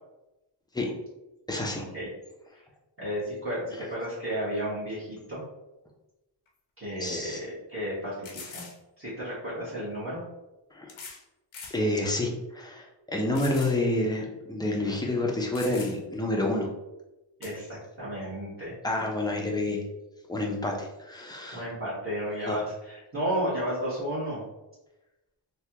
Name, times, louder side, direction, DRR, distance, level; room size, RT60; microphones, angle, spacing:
voice 1, 1.5-1.9 7.0-7.4 10.7-10.9 11.7-16.7 18.8-19.8 20.3-21.6 22.4-22.6, left 1 dB, 10° left, 0 dB, 0.5 m, -29 dB
voice 2, 3.0-5.4 6.8-8.6 9.0-10.2 17.4-18.8 21.5-24.4, equal, 30° right, -9 dB, 1.3 m, -33 dB
sound 1, 6.5-6.6 7.1-7.2 8.2-8.8 9.9-10.0 10.9-11.2 11.5-11.8 12.3-12.4 13.4-13.8 14.2-14.3 15.1-15.2 15.5-16.2 17.4-17.6, left 4 dB, 90° left, 0.7 m, -43 dB
3.3 x 2.3 x 2.8 m, 0.99 s
wide cardioid pair, 120°, 46 cm